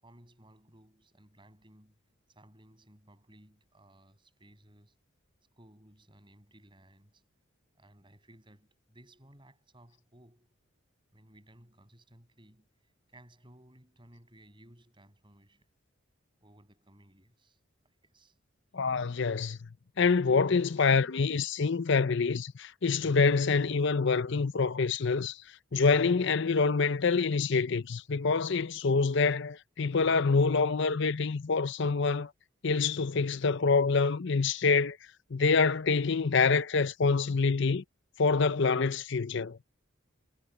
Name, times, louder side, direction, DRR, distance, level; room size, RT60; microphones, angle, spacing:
voice 1, 0.0-5.0 5.6-7.2 7.7-10.5 11.1-15.7 16.4-18.4 18.7-18.9 35.5-35.8, right 1 dB, 25° right, 7.6 m, -59 dB
voice 2, 18.7-19.7 20.0-25.4 25.7-32.3 32.6-35.0 35.3-37.8 38.2-39.6, left 4 dB, 60° left, 0.6 m, -26 dB
head